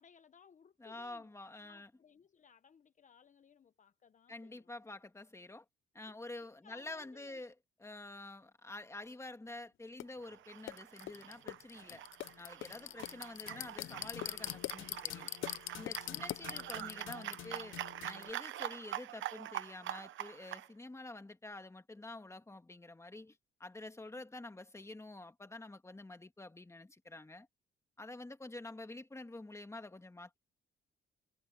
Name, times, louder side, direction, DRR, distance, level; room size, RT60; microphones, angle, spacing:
voice 1, 0.0-1.3 1.6-4.7 6.1-6.2 6.6-7.4 12.8-13.1 15.9-16.6, left 7 dB, 40° left, 0.9 m, -63 dB
voice 2, 0.8-1.9 4.3-5.6 5.9-7.5 7.8-12.0 12.4-15.3 15.7-17.8 18.0-27.5 28.0-30.4, left 2 dB, 15° left, 2.1 m, -48 dB
sound 1, 10.0-10.1 10.7-18.3, left 15 dB, 80° left, 0.6 m, -43 dB
sound 2, 10.2-20.7, right 13 dB, 75° right, 0.9 m, -45 dB
cardioid pair, 90°, 20 cm